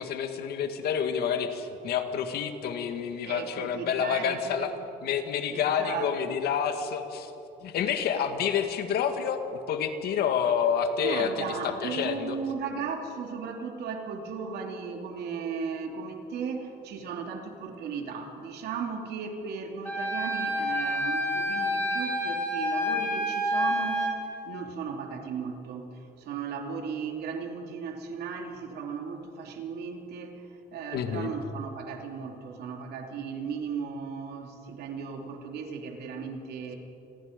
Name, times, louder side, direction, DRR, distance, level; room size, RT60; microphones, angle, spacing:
voice 1, 0.0-4.7 5.0-7.3 7.6-9.4 9.7-11.3 11.8-12.4 30.9-31.3, left 7 dB, 70° left, 7 dB, 2.0 m, -28 dB
voice 2, 3.3-4.8 5.5-6.4 11.0-36.8, right 5 dB, 75° right, 3 dB, 3.0 m, -36 dB
Wind instrument woodwind instrument, 19.9-24.1, equal, 10° left, 6.6 m, -28 dB
29.0 x 21.0 x 5.3 m, 2.9 s
cardioid pair, 110°, 17 cm